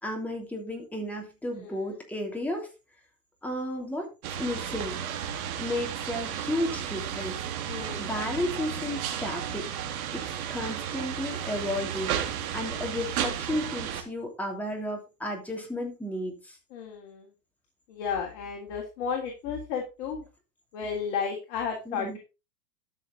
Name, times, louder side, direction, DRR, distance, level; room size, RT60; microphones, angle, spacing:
voice 1, 0.0-2.7 3.4-5.0 5.6-7.4 7.8-9.7 10.1-12.2 12.5-16.6 21.8-22.2, left 1 dB, 5° left, 0 dB, 3.0 m, -33 dB
voice 2, 1.5-1.9 7.7-8.1 16.7-17.3 17.9-20.2 20.7-22.2, left 6 dB, 45° left, 0 dB, 3.2 m, -33 dB
sound 1, 4.2-14.0, right 9 dB, 60° right, 2.9 m, -33 dB
13.0 x 6.5 x 3.9 m, 0.28 s
hypercardioid pair, 135°, 49 cm